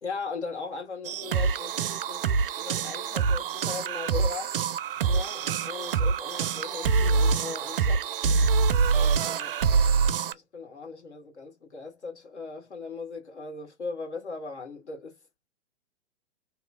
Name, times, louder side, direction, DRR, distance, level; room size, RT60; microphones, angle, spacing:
voice 1, 0.0-4.6 5.0-8.1 8.9-9.5 10.3-15.1, left 4 dB, 75° left, 1.8 m, -38 dB
sound 1, 1.0-10.3, right 5 dB, 55° right, 0.5 m, -25 dB
3.0 x 2.9 x 2.5 m
figure-of-eight pair, 110°, 34 cm